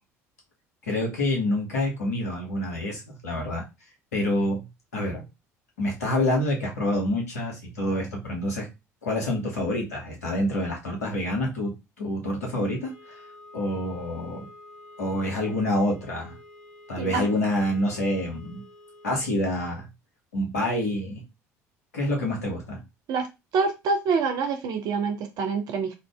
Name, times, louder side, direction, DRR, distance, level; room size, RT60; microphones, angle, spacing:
voice 1, 0.9-3.6 4.1-4.7 4.9-5.3 5.8-8.7 9.0-12.9 13.5-14.5 15.0-16.4 16.9-18.6 19.0-19.9 20.3-21.2 21.9-22.8, left 1 dB, 85° left, 1.1 m, -27 dB
sound 1, 12.4-19.4, left 1 dB, 60° left, 1.2 m, -49 dB
voice 2, 23.5-25.9, right 5 dB, 55° right, 0.6 m, -26 dB
2.6 x 2.5 x 3.4 m
hypercardioid pair, 65°, 8 cm